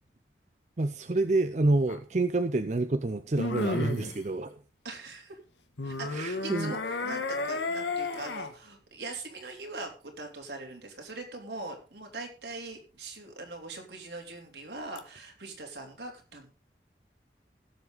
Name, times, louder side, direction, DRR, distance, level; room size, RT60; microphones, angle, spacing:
voice 1, 0.8-4.6 6.1-6.7, right 2 dB, 40° right, 10 dB, 0.5 m, -28 dB
sound 1, 1.9-2.0 3.4-4.2 5.8-8.5 15.0-15.1, left 2 dB, 85° left, 1.5 m, -32 dB
voice 2, 4.8-5.4 5.8-16.5, right 2 dB, 75° right, 2 dB, 3.3 m, -42 dB
17.0 x 7.4 x 4.0 m, 0.35 s
head